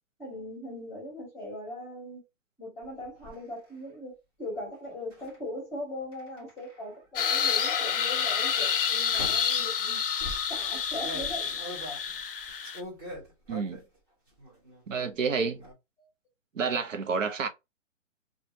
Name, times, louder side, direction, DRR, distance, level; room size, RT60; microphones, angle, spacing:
voice 1, 0.2-2.2 2.6-10.1 10.5-11.5 16.0-16.1, left 1 dB, 5° left, 1.1 m, -40 dB
sound 1, 2.8-3.4 5.1-5.4 6.1-6.9 7.7-8.0 9.1-9.6 10.2-14.0 14.3-14.9 15.1-15.7, equal, 15° right, 1.0 m, -43 dB
sound 2, 7.2-12.8, left 7 dB, 50° left, 0.5 m, -28 dB
voice 2, 13.5-13.8 14.9-15.6 16.5-17.5, right 5 dB, 80° right, 0.8 m, -29 dB
2.6 x 2.5 x 2.8 m
hypercardioid pair, 160°, 38 cm